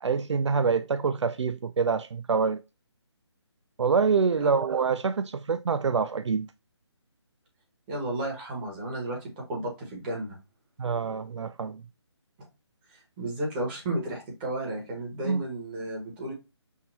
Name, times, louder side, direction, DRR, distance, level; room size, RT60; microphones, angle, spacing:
voice 1, 0.0-2.6 3.8-6.5 10.8-11.8 15.2-15.4, right 5 dB, 80° right, 0.4 m, -26 dB
voice 2, 7.9-10.4 12.9-16.3, right 1 dB, 20° right, 1.6 m, -33 dB
5.7 x 2.7 x 2.6 m
figure-of-eight pair, 155°, 15 cm